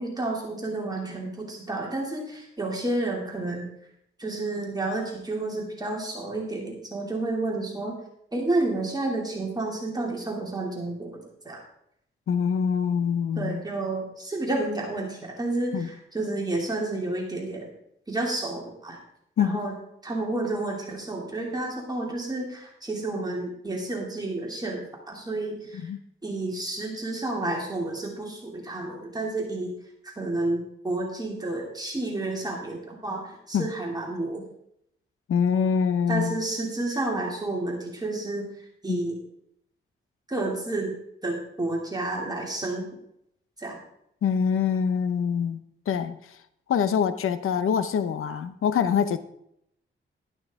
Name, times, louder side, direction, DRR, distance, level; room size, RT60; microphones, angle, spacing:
voice 1, 0.0-3.7 4.2-8.0 8.3-11.1 11.4-11.6 13.4-17.7 18.1-19.0 19.4-19.7 20.0-25.8 26.2-29.7 30.0-34.4 36.1-38.5 38.8-39.1 40.3-40.9 41.2-42.8 43.6-43.8, right 2 dB, 20° right, -1 dB, 2.7 m, -30 dB
voice 2, 12.3-13.6 15.7-15.9 19.4-19.6 25.7-26.0 33.5-33.7 35.3-36.4 38.9-39.0 44.2-45.6 45.9-46.2 46.7-49.2, left 7 dB, 85° left, 12 dB, 0.8 m, -25 dB
12.0 x 11.5 x 3.7 m, 0.74 s
cardioid pair, 100°, 21 cm